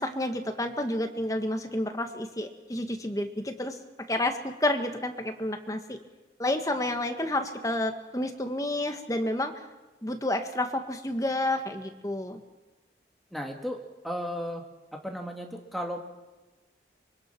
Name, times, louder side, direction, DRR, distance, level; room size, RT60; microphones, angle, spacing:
voice 1, 0.0-3.8 4.1-6.0 6.4-9.5 10.0-12.4, left 1 dB, 20° left, 6 dB, 1.7 m, -30 dB
voice 2, 13.3-14.6 14.9-16.0, equal, ahead, 1 dB, 2.5 m, -35 dB
24.5 x 23.5 x 6.1 m, 1.2 s
head